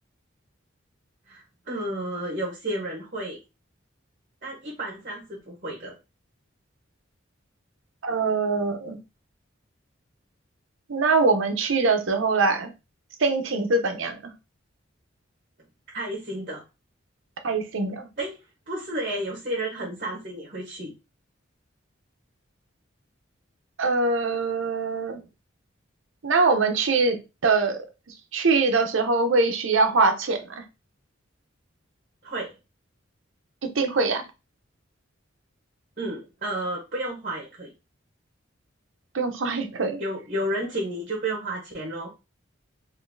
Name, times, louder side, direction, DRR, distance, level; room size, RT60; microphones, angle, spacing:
voice 1, 1.3-3.4 4.4-6.0 15.9-16.6 18.2-18.4 18.7-20.9 32.2-32.6 36.0-37.7 40.0-42.1, right 1 dB, 40° right, -2 dB, 1.0 m, -31 dB
voice 2, 8.0-9.0 10.9-12.7 13.2-14.2 17.4-18.1 23.8-25.2 26.2-27.8 28.3-30.4 33.8-34.2 39.1-40.0, right 3 dB, 75° right, 6 dB, 0.7 m, -23 dB
3.8 x 2.6 x 2.6 m, 0.27 s
head